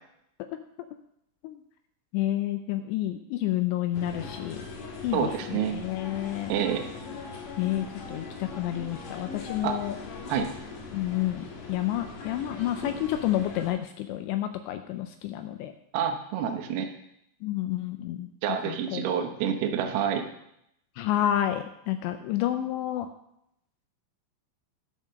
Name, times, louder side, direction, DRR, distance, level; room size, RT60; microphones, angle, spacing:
voice 1, 2.1-4.6 5.0-6.5 7.6-10.0 10.9-15.7 17.4-18.3 18.7-19.0 21.0-23.1, left 13 dB, 85° left, 8 dB, 2.6 m, -29 dB
sound 1, 3.9-13.7, left 4 dB, 60° left, 2.5 m, -40 dB
voice 2, 5.1-5.7 6.5-6.9 9.6-9.8 10.3-10.5 15.9-16.9 18.4-20.2, right 8 dB, 70° right, 4 dB, 2.6 m, -28 dB
11.0 x 5.7 x 6.4 m, 0.78 s
omnidirectional pair, 5.4 m